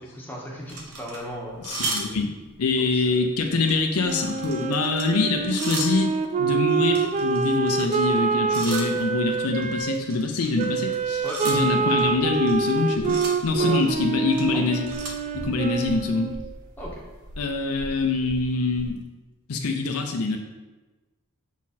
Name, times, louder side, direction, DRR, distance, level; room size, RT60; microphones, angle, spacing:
voice 1, 0.1-1.7 2.8-3.3 11.2-11.7 13.6-13.8 14.5-14.6 16.8-17.0, equal, 10° left, -3 dB, 1.2 m, -36 dB
sound 1, 0.7-2.6 3.0-3.2 3.5-6.1 6.7-8.2 8.5-19.0, right 2 dB, 75° right, 1.1 m, -37 dB
voice 2, 1.6-2.3 2.6-6.1 6.4-13.2 13.4-14.9 15.3-16.3 17.4-19.0 19.5-20.4, left 3 dB, 70° left, 3 dB, 0.6 m, -25 dB
Wind instrument woodwind instrument, 4.0-9.9 10.6-16.4, right 4 dB, 35° right, 0.4 m, -26 dB
6.0 x 4.2 x 4.2 m, 1.2 s
head